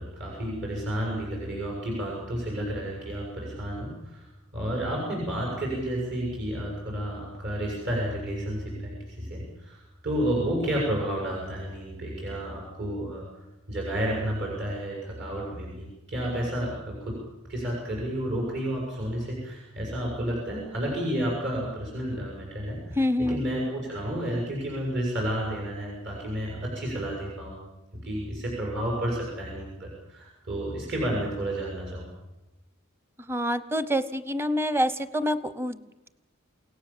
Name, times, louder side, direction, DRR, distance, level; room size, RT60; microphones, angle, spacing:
voice 1, 0.0-13.3 13.7-17.2 17.5-27.6 27.9-32.1, right 1 dB, 60° right, -1 dB, 7.2 m, -31 dB
voice 2, 23.0-23.4 33.3-36.1, equal, 10° right, 14 dB, 0.9 m, -27 dB
28.5 x 17.5 x 7.4 m, 1.0 s
head